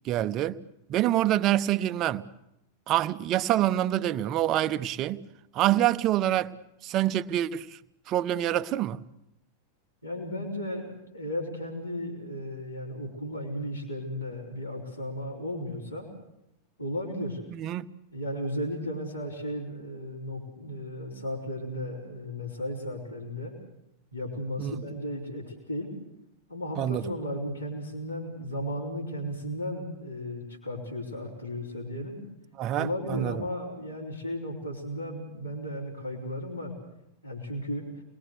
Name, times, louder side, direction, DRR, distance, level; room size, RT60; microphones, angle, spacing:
voice 1, 0.0-0.6 0.9-2.2 2.9-5.2 5.5-6.5 6.8-7.8 8.1-9.0 17.5-17.9 24.6-24.8 26.8-27.0 32.6-33.4, right 13 dB, 35° right, 0.9 m, -26 dB
voice 2, 10.0-16.1 16.8-17.4 18.1-23.5 24.1-25.9 26.5-32.2 32.7-36.7 37.2-37.9, equal, 90° left, 4.8 m, -35 dB
29.0 x 21.0 x 6.7 m
figure-of-eight pair, 90°, 0 cm